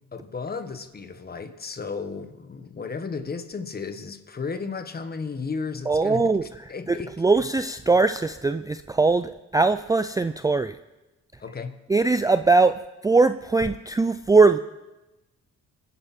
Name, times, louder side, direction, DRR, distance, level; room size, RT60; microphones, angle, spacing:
voice 1, 0.1-7.5 11.4-11.8, left 4 dB, 30° left, 9 dB, 1.5 m, -34 dB
voice 2, 5.9-6.4 6.9-10.8 11.9-14.6, right 3 dB, 10° right, 11 dB, 0.4 m, -21 dB
27.0 x 10.5 x 4.4 m, 1.0 s
cardioid pair, 90°, 30 cm